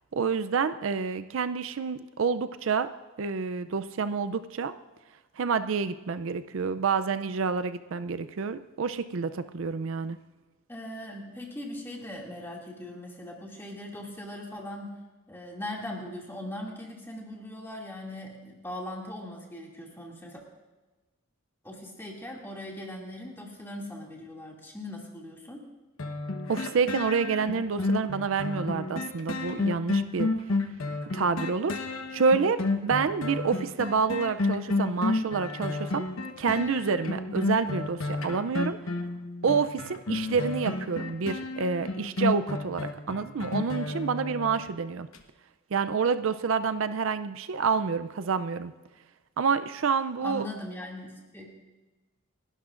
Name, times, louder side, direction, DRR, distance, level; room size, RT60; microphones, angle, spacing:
voice 1, 0.1-2.9 3.2-4.7 5.4-10.2 26.5-30.3 31.1-36.1 36.4-38.8 39.4-45.1 45.7-48.7 49.4-50.5, right 5 dB, 70° right, 12 dB, 0.5 m, -28 dB
voice 2, 10.7-15.0 15.3-20.4 21.6-25.6 50.2-51.5, left 1 dB, 10° left, -2 dB, 2.4 m, -40 dB
sound 1, 26.0-44.7 45.1-45.2, left 3 dB, 85° left, 1.1 m, -31 dB
29.5 x 12.0 x 2.5 m, 1.2 s
head